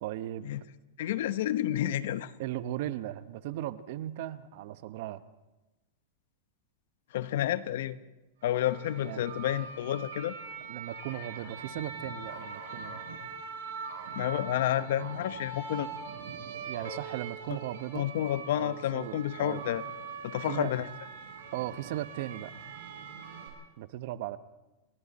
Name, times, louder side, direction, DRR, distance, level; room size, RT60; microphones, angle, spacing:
voice 1, 0.0-0.5 2.4-5.2 9.0-9.3 10.7-13.0 16.6-18.1 18.5-19.6 20.5-20.7 21.5-22.5 23.8-24.4, right 13 dB, 60° right, 14 dB, 1.0 m, -37 dB
voice 2, 1.0-2.3 7.1-8.0 8.4-10.3 14.1-15.9 17.9-19.8 20.2-20.9, left 12 dB, 70° left, 14 dB, 1.0 m, -30 dB
sound 1, 8.4-23.5, right 5 dB, 80° right, 7.9 m, -42 dB
29.5 x 21.0 x 4.2 m, 1.0 s
supercardioid pair, 135°, 0 cm